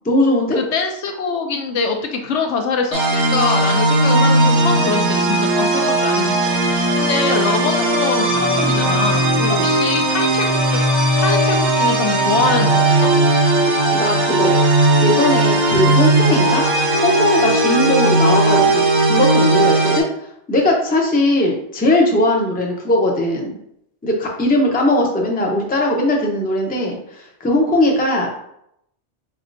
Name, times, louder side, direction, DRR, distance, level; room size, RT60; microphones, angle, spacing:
voice 1, 0.0-0.6 9.4-9.6 13.9-14.6 15.0-16.7 17.0-18.8 19.1-23.5 24.0-28.3, left 1 dB, 10° left, 0 dB, 0.5 m, -19 dB
voice 2, 0.5-6.5 7.0-10.8 11.1-13.1, left 5 dB, 75° left, 4 dB, 0.9 m, -23 dB
sound 1, 2.9-20.0, right 2 dB, 65° right, 1.1 m, -17 dB
4.1 x 3.5 x 2.5 m, 0.74 s
omnidirectional pair, 1.2 m